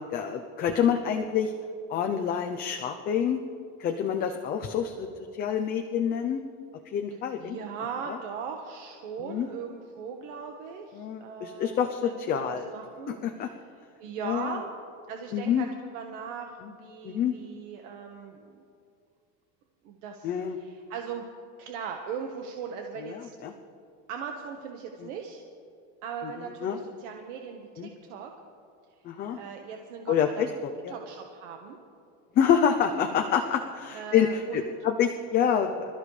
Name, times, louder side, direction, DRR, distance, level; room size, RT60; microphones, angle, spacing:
voice 1, 0.1-1.5 1.9-3.4 3.8-5.1 5.4-6.4 6.9-7.6 9.2-9.5 10.9-12.7 13.1-13.5 14.2-14.6 15.3-15.6 17.0-17.3 20.2-20.6 23.0-23.5 26.2-26.3 26.6-26.8 27.8-27.9 29.0-29.4 30.1-30.9 32.3-35.9, left 8 dB, 25° left, 4 dB, 0.6 m, -27 dB
voice 2, 7.4-13.6 14.0-14.7 15.1-18.6 19.8-21.2 21.6-23.3 24.1-25.4 26.0-28.3 29.3-30.4 30.9-31.8 33.9-34.7, right 6 dB, 80° right, 3 dB, 1.4 m, -39 dB
26.5 x 13.5 x 3.3 m, 2.4 s
cardioid pair, 170°, 35 cm